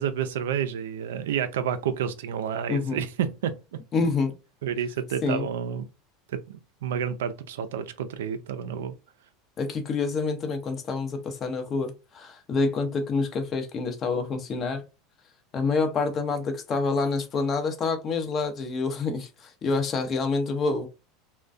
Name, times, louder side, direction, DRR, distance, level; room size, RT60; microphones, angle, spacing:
voice 1, 0.0-3.8 4.6-5.9 6.3-8.9, right 8 dB, 85° right, 0.3 m, -30 dB
voice 2, 2.7-3.0 3.9-4.3 5.2-5.5 9.6-14.8 15.5-20.9, left 4 dB, 35° left, 0.6 m, -27 dB
2.3 x 2.1 x 2.5 m
supercardioid pair, 105°, 0 cm